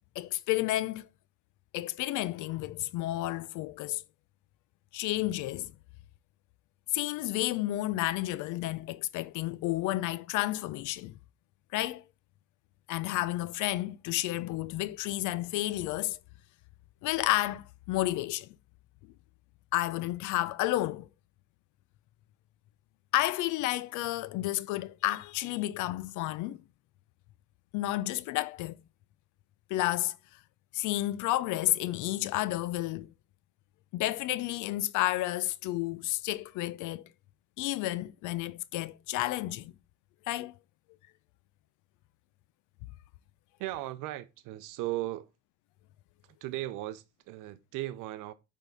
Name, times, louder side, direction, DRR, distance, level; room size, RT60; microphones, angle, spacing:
voice 1, 0.2-1.1 1.7-4.0 4.9-5.7 6.9-11.2 11.7-12.0 12.9-16.2 17.0-18.5 19.7-21.1 23.1-26.6 27.7-28.8 29.7-30.2 30.7-33.1 33.9-37.1 37.6-39.7 40.3-40.5, left 16 dB, 75° left, 0.5 m, -31 dB
voice 2, 43.6-45.3 46.2-48.3, right 16 dB, 80° right, 0.6 m, -37 dB
8.1 x 3.7 x 3.9 m
cardioid pair, 140°, 31 cm